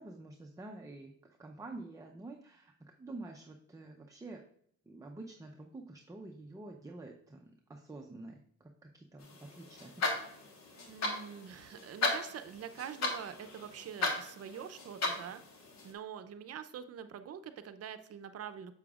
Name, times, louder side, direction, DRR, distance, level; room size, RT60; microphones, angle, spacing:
voice 1, 0.0-4.4 4.9-10.3, right 2 dB, 10° right, 2 dB, 0.6 m, -48 dB
sound 1, 9.2-15.9, left 2 dB, 65° left, 1.5 m, -37 dB
voice 2, 10.9-15.4 15.8-18.8, right 8 dB, 55° right, 10 dB, 0.6 m, -45 dB
7.0 x 6.7 x 2.4 m, 0.65 s
cardioid pair, 90°, 30 cm